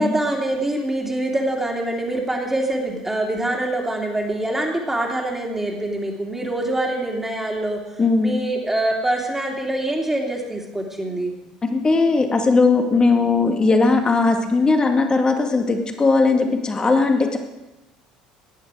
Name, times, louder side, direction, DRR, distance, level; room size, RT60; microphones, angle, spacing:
voice 1, 0.0-7.8 8.2-11.3, right 1 dB, 10° right, 0 dB, 3.1 m, -24 dB
voice 2, 8.0-8.3 11.7-17.4, left 3 dB, 25° left, 4 dB, 2.2 m, -18 dB
17.0 x 10.5 x 4.9 m, 1.0 s
figure-of-eight pair, 60°, 3 cm